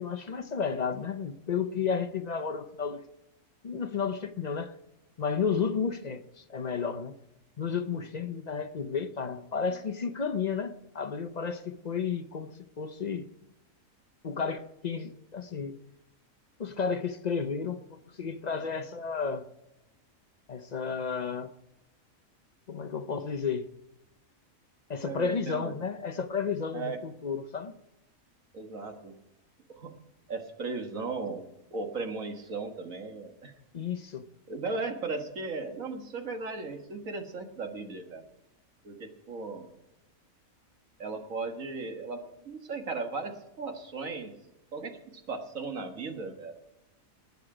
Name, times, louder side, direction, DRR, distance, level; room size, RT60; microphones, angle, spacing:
voice 1, 0.0-3.0 3.6-4.7 5.2-7.2 7.6-12.5 12.8-13.3 14.2-15.8 16.6-19.5 20.5-21.5 22.7-23.6 24.9-27.7 33.7-34.2, left 6 dB, 45° left, 0.6 m, -32 dB
voice 2, 25.0-25.7 26.7-27.0 28.5-29.1 29.7-29.9 30.3-31.4 31.7-33.5 34.5-38.2 38.8-39.7 41.0-42.2 42.5-44.3 44.7-46.6, right 3 dB, 70° right, 1.9 m, -36 dB
19.5 x 8.3 x 4.9 m
omnidirectional pair, 1.4 m